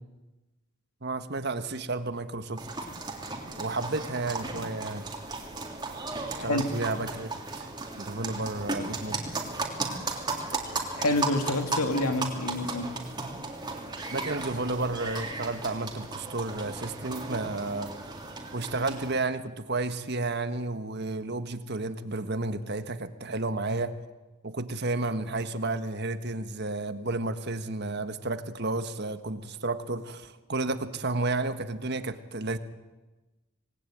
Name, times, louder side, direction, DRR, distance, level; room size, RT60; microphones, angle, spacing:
voice 1, 1.0-2.7 3.6-5.0 6.3-7.3 7.6-7.7 8.0-9.2 14.1-17.9 18.5-23.9 24.4-32.6, right 2 dB, 50° right, 10 dB, 1.5 m, -32 dB
sound 1, 2.6-19.1, right 3 dB, 20° right, 3.2 m, -35 dB
voice 2, 11.0-12.9, left 2 dB, 90° left, 6 dB, 3.0 m, -27 dB
27.0 x 19.5 x 9.3 m, 1.1 s
head